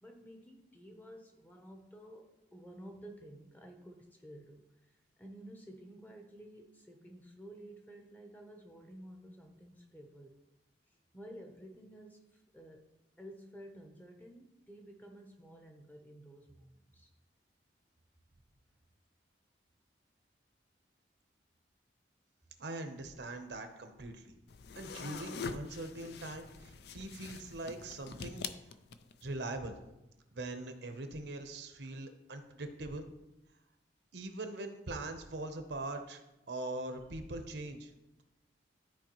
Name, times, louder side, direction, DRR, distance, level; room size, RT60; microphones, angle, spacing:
voice 1, 0.0-10.4 10.9-12.9 13.2-17.1, right 1 dB, 10° left, 2 dB, 0.8 m, -52 dB
voice 2, 22.6-24.3 24.8-28.4 29.2-29.8 30.3-33.1 34.1-36.2 36.5-37.9, right 2 dB, 70° right, 6 dB, 0.8 m, -42 dB
sound 1, 24.5-29.3, left 5 dB, 60° left, 0.4 m, -44 dB
12.5 x 4.6 x 3.0 m, 0.96 s
head